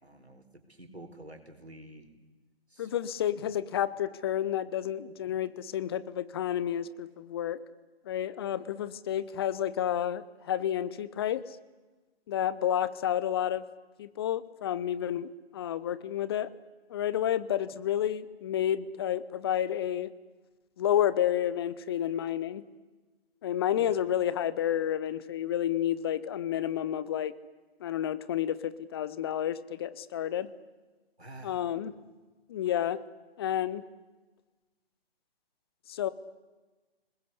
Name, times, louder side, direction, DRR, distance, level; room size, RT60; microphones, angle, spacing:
voice 1, 0.0-2.1 2.7-2.9 23.8-23.9 31.2-31.7, right 1 dB, 90° right, 5 dB, 4.4 m, -49 dB
voice 2, 2.8-7.6 8.1-11.6 12.3-13.6 14.0-16.5 16.9-20.1 20.8-22.6 23.4-27.3 27.8-30.5 31.4-31.9 32.5-33.0 33.4-33.8 35.9-36.1, left 10 dB, 25° left, 16 dB, 0.7 m, -30 dB
30.0 x 20.5 x 8.2 m, 1.2 s
figure-of-eight pair, 135°, 31 cm